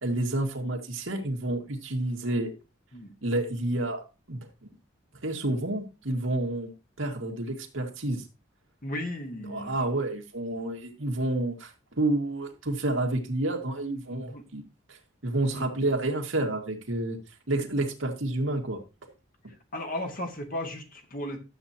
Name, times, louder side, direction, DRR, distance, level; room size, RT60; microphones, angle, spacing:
voice 1, 0.0-2.5 3.2-4.7 5.2-6.7 7.0-8.2 9.5-11.7 12.0-17.2 17.5-18.8, right 2 dB, 80° right, 2.1 m, -29 dB
voice 2, 8.8-9.7 14.1-14.4 15.5-15.6 19.7-21.4, left 1 dB, 45° left, 1.9 m, -35 dB
12.5 x 8.2 x 2.8 m
head